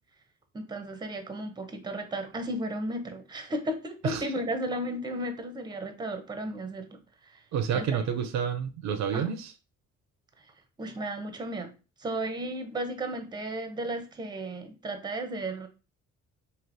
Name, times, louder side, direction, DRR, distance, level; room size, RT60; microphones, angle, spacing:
voice 1, 0.5-7.0 7.7-7.9 9.1-9.3 10.8-11.7 12.0-15.7, right 1 dB, 15° right, 0.6 m, -34 dB
voice 2, 7.5-9.5, right 7 dB, 65° right, 0.5 m, -29 dB
3.2 x 2.8 x 2.5 m
cardioid pair, 90°, 30 cm